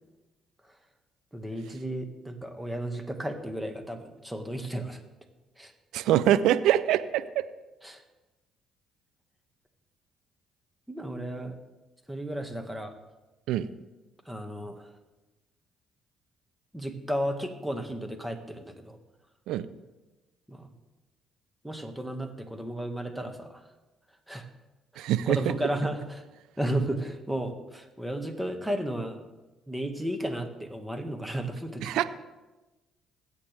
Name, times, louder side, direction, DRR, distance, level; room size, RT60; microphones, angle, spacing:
voice 1, 1.3-5.0 5.6-5.7 7.8-8.0 10.9-11.6 12.1-12.9 14.3-14.9 16.7-19.0 20.5-20.7 21.6-23.6 24.3-24.5 24.9-26.2 26.6-29.2 29.7-32.0, right 1 dB, 5° right, 5 dB, 1.9 m, -33 dB
voice 2, 5.9-7.4 13.5-13.7 19.5-19.7 25.0-25.4 31.8-32.0, right 12 dB, 75° right, 14 dB, 0.5 m, -24 dB
20.0 x 8.5 x 3.5 m, 1.1 s
supercardioid pair, 60°, 0 cm